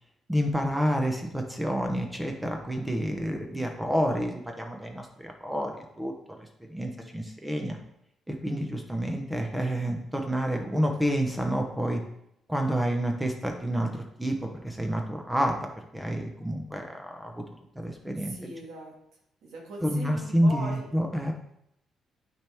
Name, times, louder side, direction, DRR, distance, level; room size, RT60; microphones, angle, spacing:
voice 1, 0.3-6.1 6.4-7.8 8.3-12.0 12.5-15.5 15.9-17.4 17.8-18.3 19.8-21.3, equal, 10° right, 3 dB, 0.9 m, -29 dB
voice 2, 3.3-3.6 18.2-18.9 19.4-20.9, right 1 dB, 80° right, -1 dB, 1.8 m, -40 dB
8.7 x 4.5 x 3.5 m, 0.78 s
cardioid pair, 90°, 0 cm